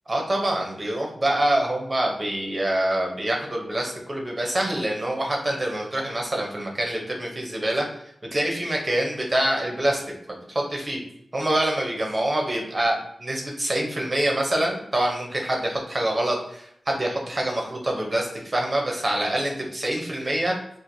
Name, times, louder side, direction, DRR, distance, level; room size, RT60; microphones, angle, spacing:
voice 1, 0.1-7.9 8.3-10.0 10.5-11.0 11.3-20.5, right 1 dB, 30° right, 0 dB, 0.7 m, -25 dB
4.3 x 2.4 x 2.6 m, 0.74 s
wide cardioid pair, 105°, 0 cm